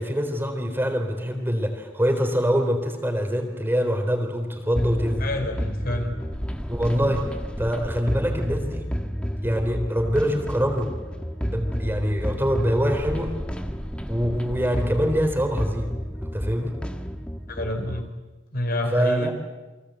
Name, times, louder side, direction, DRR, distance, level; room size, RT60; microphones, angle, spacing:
voice 1, 0.0-5.3 6.7-7.2 7.6-8.8 9.4-10.9 11.5-13.4 14.1-15.9 16.2-16.8 18.9-19.3, equal, 10° right, 4 dB, 3.9 m, -24 dB
sound 1, 4.8-18.1, equal, 5° left, 1.5 m, -31 dB
voice 2, 5.2-6.2 17.5-18.0 18.5-19.3, left 1 dB, 50° left, 5 dB, 4.3 m, -28 dB
29.5 x 24.0 x 8.1 m, 1.2 s
head